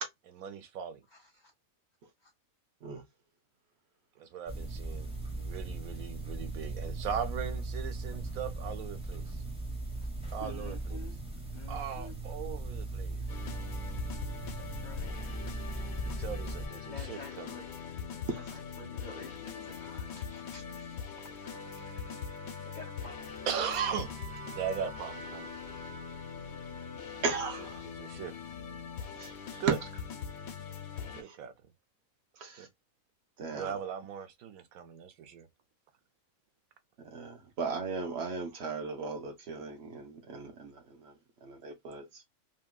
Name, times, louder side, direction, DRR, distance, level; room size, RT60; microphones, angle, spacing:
voice 1, 0.4-1.0 4.2-9.4 10.3-11.0 11.7-13.2 15.9-17.5 22.0-22.1 23.5-24.1 24.4-25.5 27.8-28.4 29.6-29.8 31.1-31.5 32.6-32.7 33.5-35.5, right 8 dB, 85° right, 1.1 m, -38 dB
voice 2, 1.1-1.5 2.2-2.3 10.0-10.1 10.4-11.2 11.5-12.2 14.5-15.1 16.9-17.7 18.3-21.0 21.8-21.9 22.6-23.6 26.4-26.9, left 3 dB, 45° left, 0.6 m, -50 dB
sound 1, 4.5-16.7, right 2 dB, 5° right, 0.8 m, -38 dB
sound 2, 13.3-31.2, left 7 dB, 90° left, 1.1 m, -42 dB
voice 3, 18.3-18.6 27.2-27.9 29.2-29.6 31.1-31.4 32.4-32.7 33.4-33.7 37.0-42.2, right 4 dB, 55° right, 1.0 m, -38 dB
Wind instrument woodwind instrument, 21.4-27.8, right 2 dB, 10° left, 1.6 m, -49 dB
2.8 x 2.7 x 2.2 m
omnidirectional pair, 1.4 m